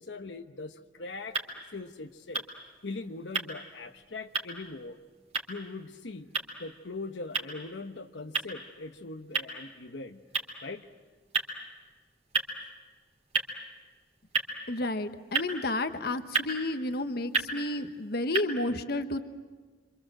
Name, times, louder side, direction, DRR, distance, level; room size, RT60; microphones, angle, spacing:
voice 1, 0.0-1.4 1.7-2.4 2.8-5.0 5.5-6.3 6.6-10.2 10.6-10.9, left 3 dB, 85° left, 6 dB, 1.1 m, -41 dB
sound 1, 1.0-18.4, right 4 dB, 35° right, 3.2 m, -37 dB
voice 2, 14.7-19.2, left 2 dB, 60° left, 9 dB, 1.2 m, -31 dB
27.0 x 26.5 x 7.7 m, 1.4 s
head